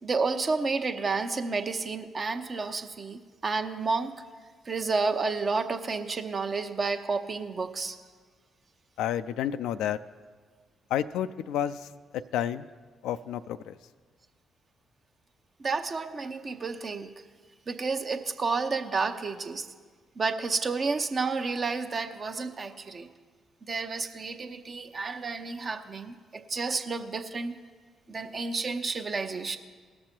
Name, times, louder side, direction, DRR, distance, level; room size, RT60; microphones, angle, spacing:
voice 1, 0.0-4.1 4.7-8.0 15.6-17.1 17.7-19.7 20.2-23.1 23.7-27.6 28.1-29.6, right 4 dB, 45° right, 6 dB, 0.8 m, -30 dB
voice 2, 9.0-10.0 10.9-11.9 12.3-12.7 13.0-13.8, left 10 dB, 75° left, 12 dB, 0.3 m, -30 dB
18.0 x 6.7 x 4.4 m, 1.5 s
hypercardioid pair, 45°, 0 cm